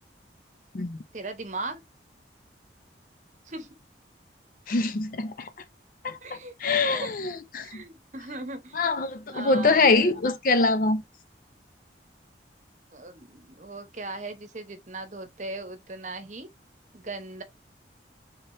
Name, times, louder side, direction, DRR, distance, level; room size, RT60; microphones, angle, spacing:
voice 1, 1.1-1.8 3.4-3.7 6.2-6.5 6.9-7.1 7.6-8.8 9.3-10.3 12.9-16.5 16.9-17.4, right 2 dB, 40° right, 0.9 m, -38 dB
voice 2, 4.7-5.5 6.0-7.7 8.8-11.0, left 3 dB, 50° left, 0.5 m, -24 dB
3.7 x 3.7 x 2.5 m
head